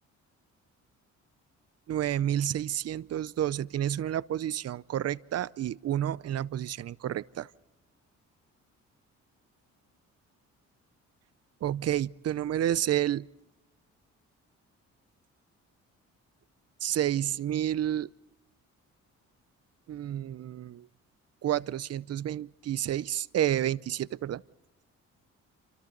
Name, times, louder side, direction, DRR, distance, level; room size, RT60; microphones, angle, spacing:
voice 1, 1.9-7.5 11.6-13.3 16.8-18.1 19.9-20.9 21.4-24.4, right 11 dB, 55° right, 0.7 m, -30 dB
28.0 x 26.0 x 4.0 m
cardioid pair, 90°, 30 cm